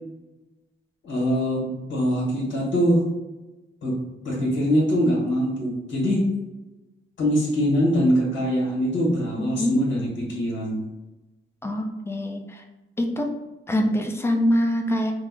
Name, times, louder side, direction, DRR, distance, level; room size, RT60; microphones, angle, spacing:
voice 1, 1.0-3.1 3.8-4.0 4.2-6.3 7.2-10.8, equal, 80° left, -6 dB, 1.3 m, -23 dB
voice 2, 9.4-9.8 11.6-12.6 13.0-13.3 13.7-15.1, equal, 15° left, 2 dB, 0.5 m, -24 dB
3.5 x 2.0 x 3.8 m, 1.1 s
cardioid pair, 120°, 19 cm